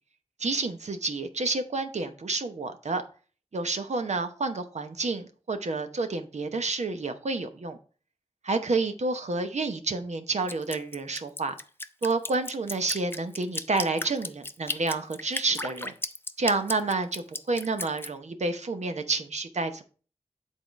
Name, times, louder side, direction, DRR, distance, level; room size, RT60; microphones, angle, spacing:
voice 1, 0.4-3.0 3.5-7.8 8.4-11.5 12.0-15.9 16.4-19.8, right 3 dB, 90° right, 0.9 m, -29 dB
Drip, 10.5-18.1, left 2 dB, 20° left, 0.5 m, -35 dB
8.1 x 3.8 x 5.1 m
wide cardioid pair, 45°, 11 cm